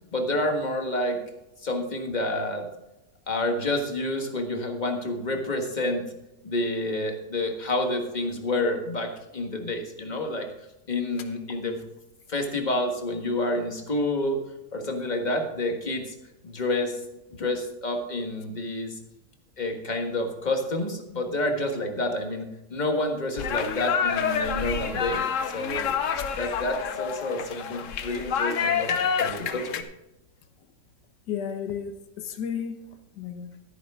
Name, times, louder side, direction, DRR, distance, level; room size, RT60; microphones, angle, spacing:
voice 1, 0.1-1.2 1.6-2.7 3.3-6.0 6.4-10.5 10.9-11.8 12.3-14.4 14.7-16.1 16.4-17.0 17.3-19.0 19.6-25.2 25.5-25.9 26.4-29.8, left 1 dB, 25° left, 3 dB, 1.6 m, -29 dB
sound 1, 23.4-29.8, left 7 dB, 55° left, 1.0 m, -28 dB
voice 2, 31.3-32.8 33.1-33.5, left 8 dB, 80° left, 7 dB, 1.6 m, -33 dB
12.0 x 10.5 x 3.6 m, 0.93 s
omnidirectional pair, 1.8 m